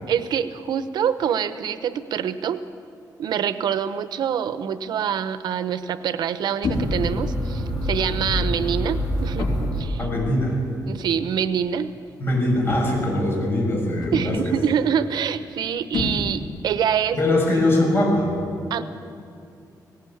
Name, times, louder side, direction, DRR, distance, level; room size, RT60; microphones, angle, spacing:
voice 1, 0.1-2.6 3.2-9.5 9.8-10.1 10.9-11.9 14.1-17.2 18.7-18.8, right 8 dB, 90° right, 12 dB, 0.8 m, -25 dB
sound 1, 6.6-7.1 8.0-8.3 9.4-9.9 11.0-11.2 12.7-13.2 14.0-14.5 15.9-16.6, left 2 dB, 85° left, 3.6 m, -29 dB
sound 2, 6.7-10.5, equal, 10° right, 7.5 m, -26 dB
voice 2, 10.0-10.5 12.2-14.4 17.2-18.3, left 1 dB, 35° left, -1 dB, 6.5 m, -21 dB
18.5 x 18.0 x 8.6 m, 2.5 s
wide cardioid pair, 155°, 7 cm